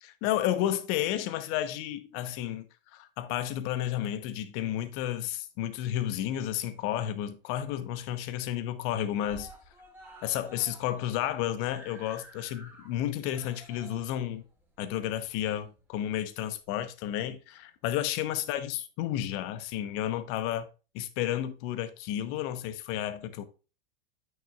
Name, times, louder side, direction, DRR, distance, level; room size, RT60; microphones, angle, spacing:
voice 1, 0.2-2.6 2.9-9.5 10.2-14.4 14.8-20.7 20.9-23.4, left 12 dB, 45° left, 1.0 m, -32 dB
Screaming, 6.3-7.2 7.6-7.7 8.0-8.1 8.4-8.9 9.2-16.0 16.8-16.9, right 1 dB, 5° right, 2.6 m, -53 dB
8.7 x 6.3 x 2.4 m
hypercardioid pair, 95°, 29 cm